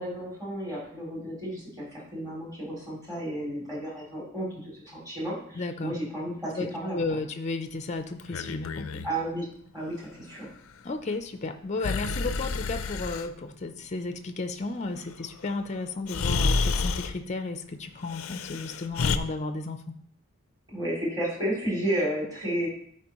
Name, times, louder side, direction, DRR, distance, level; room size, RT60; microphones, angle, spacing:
voice 1, 0.0-1.9 2.1-7.0 9.0-9.5 9.7-10.5 20.7-22.7, right 1 dB, 20° right, -6 dB, 2.9 m, -32 dB
voice 2, 5.5-6.0 6.6-9.0 10.8-19.8, left 3 dB, 35° left, 7 dB, 0.5 m, -33 dB
Breathing, 8.2-9.1 11.8-13.3 15.4-15.5 16.1-17.2 18.1-19.2, left 4 dB, 85° left, 0.5 m, -29 dB
13.0 x 4.7 x 3.0 m, 0.65 s
head